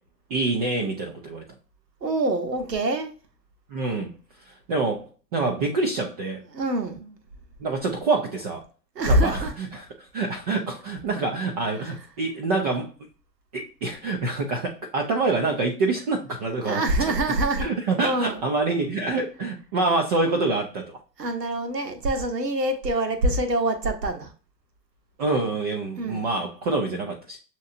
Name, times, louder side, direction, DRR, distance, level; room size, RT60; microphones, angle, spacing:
voice 1, 0.3-1.4 3.7-4.1 4.5-6.4 7.6-8.6 9.1-12.9 13.5-16.8 17.6-21.0 25.2-27.4, right 3 dB, 25° right, 0.4 m, -26 dB
voice 2, 2.0-3.1 6.5-7.2 8.9-9.5 11.8-11.9 16.6-17.7 18.0-18.4 21.2-24.3 26.0-26.2, right 1 dB, 75° right, 1.2 m, -25 dB
7.1 x 2.8 x 2.5 m
figure-of-eight pair, 95°, 50 cm